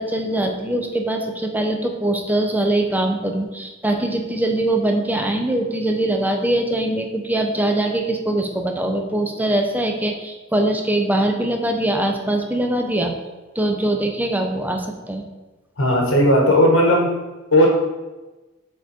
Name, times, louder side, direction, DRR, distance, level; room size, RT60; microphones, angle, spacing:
voice 1, 0.0-13.1 13.5-15.2, right 1 dB, 10° right, 3 dB, 0.8 m, -22 dB
voice 2, 15.8-17.1 17.5-17.7, equal, 85° left, 0 dB, 1.7 m, -15 dB
7.5 x 4.6 x 4.5 m, 1.1 s
head